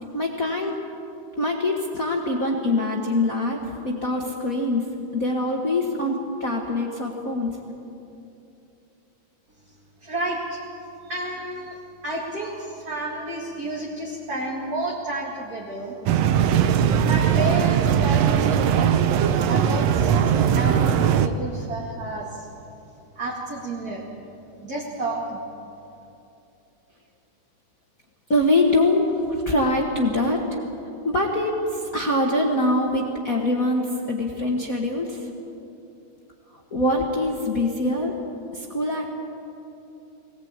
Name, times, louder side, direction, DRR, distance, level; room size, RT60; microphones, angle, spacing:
voice 1, 0.1-0.7 1.4-4.8 5.1-7.5 28.3-30.4 31.0-35.3 36.5-38.1 38.5-39.1, left 1 dB, 35° left, -1 dB, 1.6 m, -24 dB
voice 2, 10.0-10.6 11.0-11.8 12.0-16.0 17.0-18.9 19.5-22.5 23.2-24.1 24.6-25.4, right 2 dB, 30° right, -3 dB, 2.4 m, -30 dB
sound 1, 16.1-21.3, right 8 dB, 70° right, 1.7 m, -20 dB
21.0 x 18.5 x 8.9 m, 2.8 s
omnidirectional pair, 3.6 m